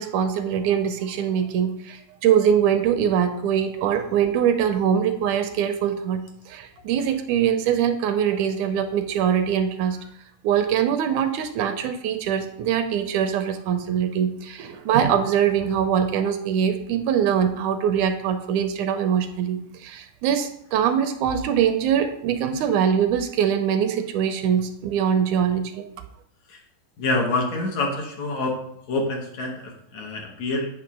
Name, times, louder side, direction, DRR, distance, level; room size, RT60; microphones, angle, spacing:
voice 1, 0.0-10.0 10.4-25.9, right 8 dB, 80° right, 7 dB, 1.9 m, -23 dB
voice 2, 27.0-28.6 28.9-30.7, left 2 dB, 65° left, 0 dB, 2.3 m, -26 dB
8.6 x 3.1 x 6.0 m, 0.73 s
omnidirectional pair, 3.6 m